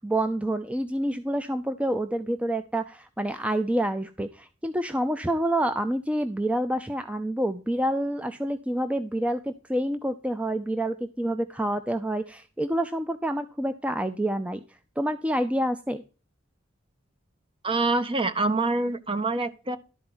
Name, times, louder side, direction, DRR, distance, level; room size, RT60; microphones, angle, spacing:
voice 1, 0.0-14.6 15.0-16.0, right 1 dB, 5° right, 0.5 m, -28 dB
voice 2, 17.6-19.8, right 2 dB, 25° right, 0.8 m, -25 dB
12.0 x 4.4 x 6.0 m
head